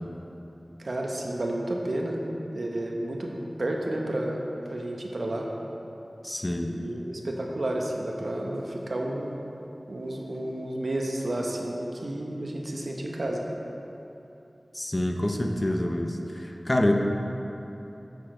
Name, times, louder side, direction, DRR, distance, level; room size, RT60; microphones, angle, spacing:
voice 1, 0.8-2.2 2.5-3.3 3.6-5.5 6.7-9.4 9.9-13.4, right 1 dB, 75° right, 0 dB, 0.8 m, -31 dB
voice 2, 6.2-6.7 14.7-16.9, left 1 dB, 35° left, 3 dB, 0.6 m, -27 dB
8.1 x 4.3 x 4.9 m, 2.9 s
wide cardioid pair, 40°, 0 cm